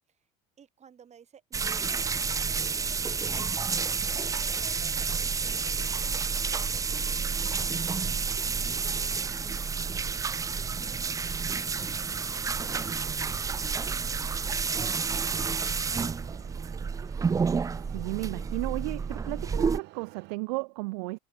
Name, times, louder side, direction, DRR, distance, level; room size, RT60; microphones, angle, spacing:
voice 1, 0.6-10.2 10.5-16.5, right 7 dB, 35° right, 6.2 m, -57 dB
sound 1, 1.5-19.8, right 5 dB, 15° right, 0.5 m, -30 dB
sound 2, 6.9-20.4, right 19 dB, 65° right, 6.8 m, -55 dB
voice 2, 17.7-21.2, right 28 dB, 80° right, 1.1 m, -34 dB
supercardioid pair, 100°, 19 cm